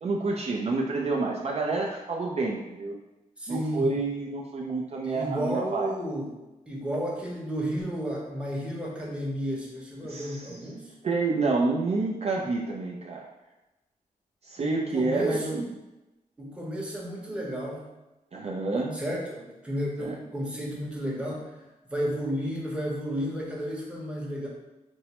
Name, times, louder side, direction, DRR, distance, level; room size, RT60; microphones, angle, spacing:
voice 1, 0.0-2.9 3.5-5.9 10.0-10.6 11.0-13.2 14.4-15.6 18.3-19.0 20.0-20.1, right 3 dB, 45° right, -3 dB, 0.4 m, -28 dB
voice 2, 3.4-3.9 5.0-6.4 6.7-10.9 14.6-15.7 16.4-17.9 18.9-21.4 21.9-24.5, equal, 5° right, -3 dB, 0.8 m, -32 dB
4.4 x 2.0 x 2.9 m, 1.0 s
wide cardioid pair, 100°, 15 cm